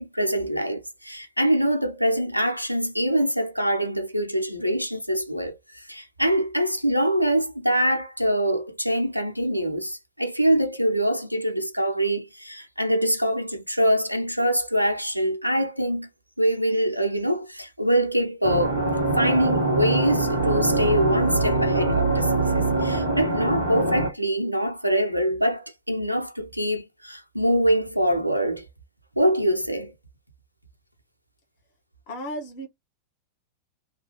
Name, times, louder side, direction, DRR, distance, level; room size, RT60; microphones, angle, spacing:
voice 1, 0.0-16.1 16.4-18.8 19.2-28.6 29.2-29.9, equal, 90° right, 0.5 m, -24 dB
sound 1, 18.4-24.1, right 2 dB, 90° left, 1.0 m, -23 dB
voice 2, 32.1-32.7, equal, 45° left, 1.2 m, -34 dB
3.0 x 2.3 x 2.8 m
figure-of-eight pair, 90°, 0 cm